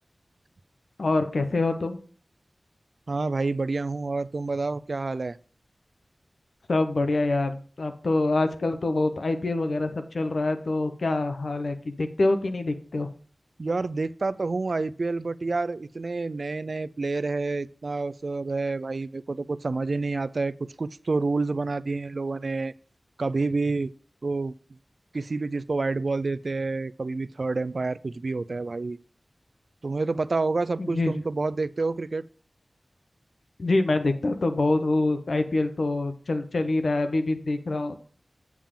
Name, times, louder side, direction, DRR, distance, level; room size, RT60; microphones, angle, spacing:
voice 1, 1.0-2.0 6.7-13.1 30.8-31.1 33.6-38.0, left 2 dB, 80° left, 8 dB, 1.0 m, -25 dB
voice 2, 3.1-5.4 13.6-20.5 20.8-22.7 23.2-23.9 24.2-24.5 25.1-29.0 29.8-32.3, right 3 dB, 70° right, 17 dB, 0.4 m, -28 dB
8.6 x 7.3 x 3.8 m, 0.43 s
wide cardioid pair, 50°, 0 cm